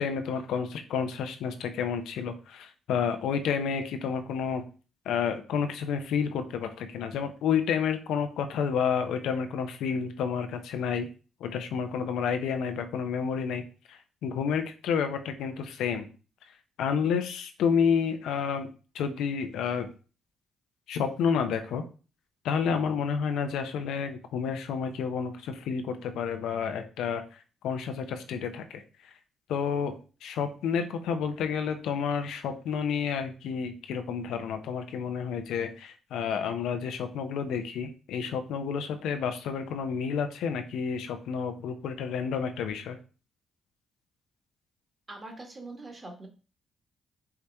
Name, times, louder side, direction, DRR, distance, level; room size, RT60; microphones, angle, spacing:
voice 1, 0.0-4.6 5.1-11.1 11.4-13.6 13.9-16.1 16.8-18.7 18.9-19.9 20.9-21.8 22.4-27.2 27.6-28.8 29.5-29.9 30.2-43.0, left 6 dB, 80° left, 7 dB, 0.6 m, -30 dB
voice 2, 45.1-46.3, right 2 dB, 30° right, 3 dB, 1.5 m, -43 dB
4.7 x 2.8 x 3.4 m, 0.35 s
cardioid pair, 75°, 0 cm